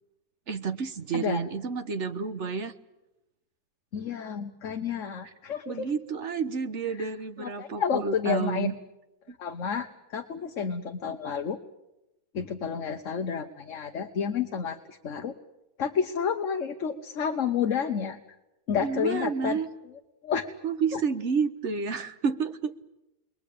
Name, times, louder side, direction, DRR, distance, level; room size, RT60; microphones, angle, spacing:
voice 1, 0.5-2.7 5.2-5.3 5.7-8.7 9.3-9.4 18.8-19.7 20.6-22.7, right 5 dB, 50° right, 9 dB, 1.4 m, -30 dB
voice 2, 3.9-5.9 7.4-8.7 9.4-9.9 10.1-11.6 12.3-15.3 15.8-18.2 18.7-19.6 20.2-20.5 20.9-21.0, left 7 dB, 50° left, 5 dB, 1.4 m, -30 dB
29.0 x 22.0 x 8.6 m, 0.97 s
omnidirectional pair, 1.7 m